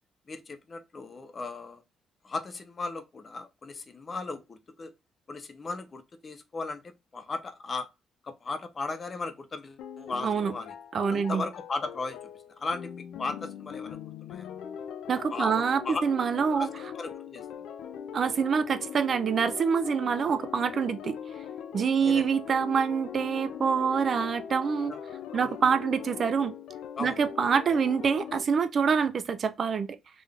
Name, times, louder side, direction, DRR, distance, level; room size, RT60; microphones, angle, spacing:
voice 1, 0.3-1.8 2.2-4.9 5.3-7.9 8.2-10.7 11.1-12.2 12.6-14.5 15.3-16.0 16.5-16.7 16.9-17.4 22.0-22.3 24.9-25.0 25.3-25.6 27.0-27.2, left 3 dB, 30° left, 0.5 m, -37 dB
sound 1, 9.8-28.4, left 8 dB, 80° left, 0.4 m, -41 dB
voice 2, 10.9-11.5 15.1-16.7 18.1-21.2 21.7-24.9 25.3-26.5 27.0-30.0, right 6 dB, 40° right, 0.3 m, -26 dB
3.7 x 2.4 x 3.3 m
cardioid pair, 160°, 0 cm